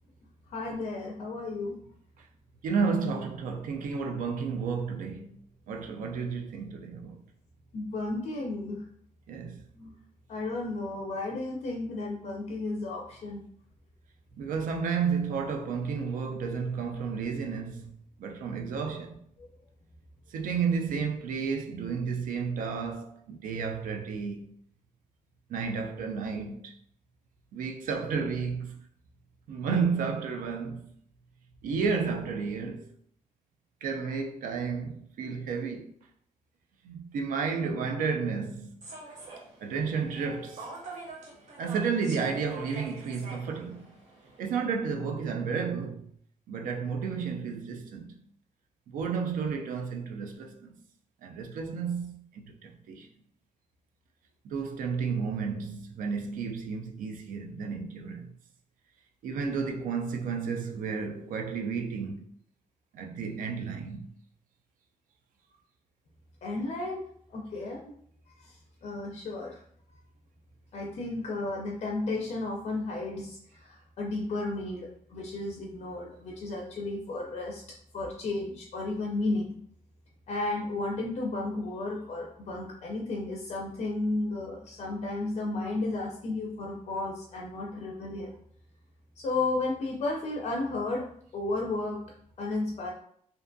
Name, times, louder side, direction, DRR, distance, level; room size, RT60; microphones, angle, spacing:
voice 1, 0.5-1.8 7.7-8.8 9.7-9.9 10.3-13.4 19.4-19.5 66.4-67.0 67.3-67.9 68.4-69.6 70.7-77.6 77.9-79.6 80.3-88.3 89.2-91.1 91.3-92.0 92.4-92.9, left 2 dB, 55° left, 0.4 m, -33 dB
voice 2, 2.6-5.4 5.7-7.2 9.3-9.6 14.4-19.2 20.3-24.5 25.5-26.8 27.5-28.8 29.5-30.8 31.6-32.9 33.8-35.9 36.8-38.8 39.6-40.7 41.6-43.9 44.4-46.1 46.5-48.1 48.9-50.7 51.2-53.1 54.4-58.3 59.2-62.3 62.9-64.1, right 5 dB, 90° right, 0.4 m, -32 dB
Human voice / Subway metro underground, 38.8-44.5, right 3 dB, 65° right, 0.7 m, -45 dB
2.5 x 2.2 x 2.5 m
wide cardioid pair, 150°, 14 cm